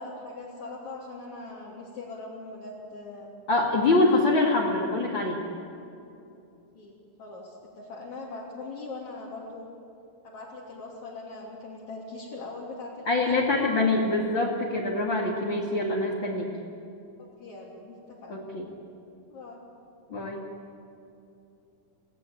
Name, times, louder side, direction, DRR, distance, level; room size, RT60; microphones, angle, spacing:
voice 1, 0.0-3.3 6.7-6.9 7.2-9.7 10.2-13.4 17.4-18.4 19.3-19.6, left 3 dB, 65° left, -6 dB, 4.5 m, -41 dB
voice 2, 3.5-5.4 13.1-16.5 18.3-18.7 20.1-20.4, left 2 dB, 40° left, -3 dB, 2.9 m, -24 dB
28.0 x 18.5 x 8.7 m, 2.8 s
omnidirectional pair, 3.6 m